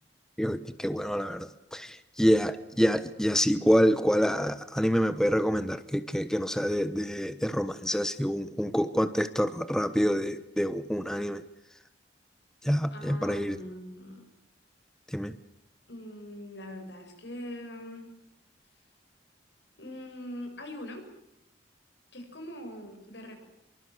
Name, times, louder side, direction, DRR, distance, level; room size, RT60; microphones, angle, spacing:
voice 1, 0.4-11.4 12.6-13.6 15.1-15.4, equal, 5° left, 12 dB, 1.0 m, -27 dB
voice 2, 12.9-14.3 15.9-18.1 19.8-21.1 22.1-23.4, left 1 dB, 75° left, 5 dB, 7.6 m, -42 dB
26.0 x 24.0 x 7.9 m, 0.85 s
head